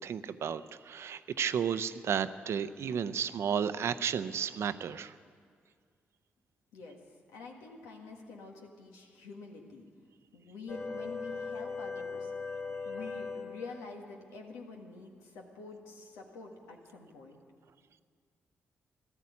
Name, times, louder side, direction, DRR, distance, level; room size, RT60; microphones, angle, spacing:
voice 1, 0.0-5.1, right 7 dB, 65° right, 13 dB, 0.6 m, -33 dB
voice 2, 7.3-9.8 10.3-17.4, left 3 dB, 85° left, 1 dB, 1.6 m, -47 dB
sound 1, 10.7-13.9, left 4 dB, 40° left, 3.1 m, -39 dB
14.0 x 12.0 x 8.3 m, 2.1 s
supercardioid pair, 45°, 5 cm